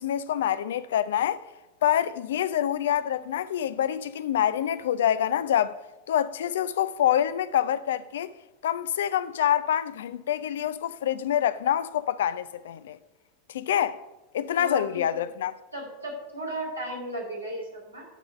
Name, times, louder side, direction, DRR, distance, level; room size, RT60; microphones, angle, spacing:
voice 1, 0.0-1.4 1.8-5.8 6.1-8.3 8.6-13.0 13.5-14.0 14.3-15.5, left 10 dB, 65° left, 0.4 m, -26 dB
voice 2, 14.5-15.2 15.7-18.0, right 1 dB, 85° right, 2.5 m, -35 dB
11.0 x 3.9 x 6.5 m
figure-of-eight pair, 85°, 0 cm